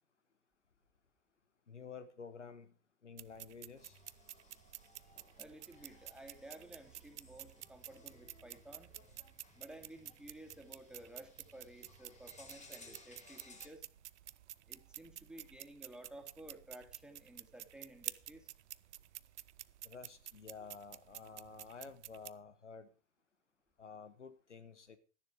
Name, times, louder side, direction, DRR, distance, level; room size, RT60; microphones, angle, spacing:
voice 1, 1.7-2.7 3.0-4.0 19.8-22.9 23.8-25.0, left 5 dB, 90° left, 12 dB, 1.1 m, -51 dB
sound 1, 3.2-22.3, right 13 dB, 75° right, 0.6 m, -51 dB
sound 2, 3.8-13.7, left 3 dB, 20° left, 3.0 m, -61 dB
voice 2, 5.4-8.9 9.6-13.9 14.7-18.5 21.7-21.8, right 1 dB, ahead, 5 dB, 2.5 m, -54 dB
12.5 x 10.5 x 4.7 m, 0.35 s
figure-of-eight pair, 80°, 34 cm